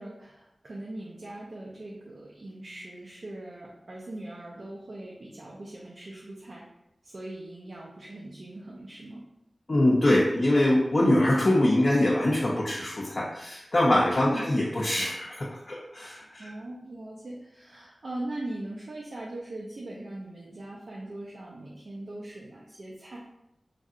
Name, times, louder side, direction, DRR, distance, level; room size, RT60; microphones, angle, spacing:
voice 1, 0.0-6.7 7.0-9.2 14.2-14.4 16.4-23.2, right 1 dB, 70° right, -4 dB, 0.5 m, -40 dB
voice 2, 9.7-16.5, left 1 dB, 50° left, -5 dB, 0.5 m, -23 dB
3.3 x 2.7 x 2.4 m, 0.85 s
wide cardioid pair, 75°, 0 cm